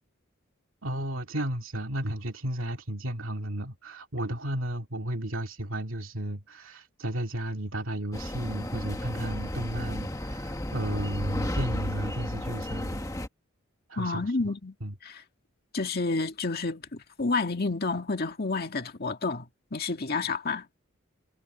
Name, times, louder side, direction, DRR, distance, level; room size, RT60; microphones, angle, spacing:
voice 1, 0.8-13.0 13.9-14.3 14.8-14.9, right 1 dB, 75° right, 2.4 m, -33 dB
sound 1, 8.1-13.3, left 1 dB, 15° left, 1.6 m, -33 dB
voice 2, 14.0-14.7 15.0-15.2 15.7-20.7, left 3 dB, 50° left, 2.0 m, -30 dB
head